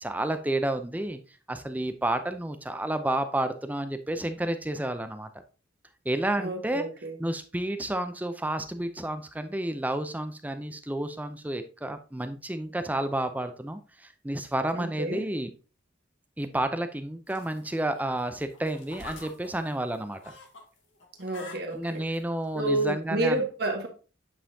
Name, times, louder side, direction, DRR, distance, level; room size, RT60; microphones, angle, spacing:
voice 1, 0.0-1.2 1.5-5.3 6.1-6.8 7.2-15.5 16.4-20.3 21.7-23.4, right 1 dB, 10° right, 0.5 m, -30 dB
voice 2, 6.4-7.2 14.7-15.3 21.2-22.0 22.5-23.9, right 2 dB, 55° right, 1.4 m, -30 dB
sound 1, 17.3-20.6 21.0-22.2 22.9-23.0, left 3 dB, 80° left, 1.6 m, -46 dB
8.6 x 5.4 x 2.7 m
head